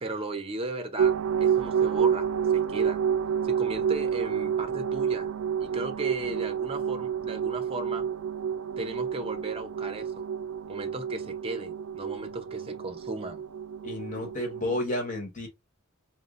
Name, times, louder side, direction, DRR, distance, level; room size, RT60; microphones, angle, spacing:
voice 1, 0.0-3.0 3.4-5.3 5.6-8.1 8.8-10.3 10.7-13.4, right 2 dB, 25° right, 0.7 m, -36 dB
sound 1, 1.0-14.8, right 8 dB, 85° right, 0.4 m, -29 dB
voice 2, 13.8-15.5, left 2 dB, 40° left, 1.4 m, -31 dB
3.8 x 2.1 x 3.8 m
head